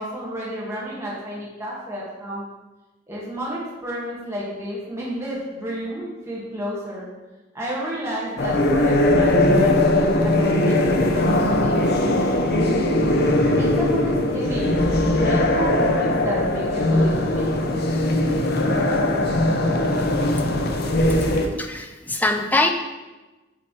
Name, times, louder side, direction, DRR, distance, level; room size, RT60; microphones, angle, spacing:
voice 1, 0.0-2.4 3.1-7.1 7.5-11.8 13.6-14.8 15.1-17.7, equal, 15° right, -6 dB, 1.4 m, -31 dB
sound 1, 8.4-21.5, left 1 dB, 60° left, 0.7 m, -20 dB
voice 2, 21.6-22.7, left 2 dB, 10° left, 5 dB, 0.4 m, -22 dB
8.4 x 3.2 x 4.4 m, 1.1 s
head